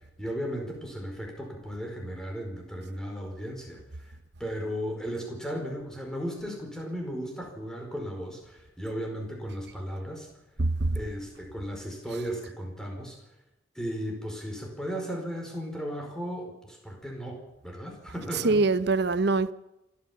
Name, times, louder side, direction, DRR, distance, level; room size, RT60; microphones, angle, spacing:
voice 1, 0.2-4.1 4.4-10.3 10.9-13.2 13.7-18.6, equal, 5° left, 4.8 m, -35 dB
voice 2, 10.6-11.0 18.4-19.5, right 3 dB, 55° right, 0.8 m, -23 dB
27.0 x 13.0 x 7.4 m
head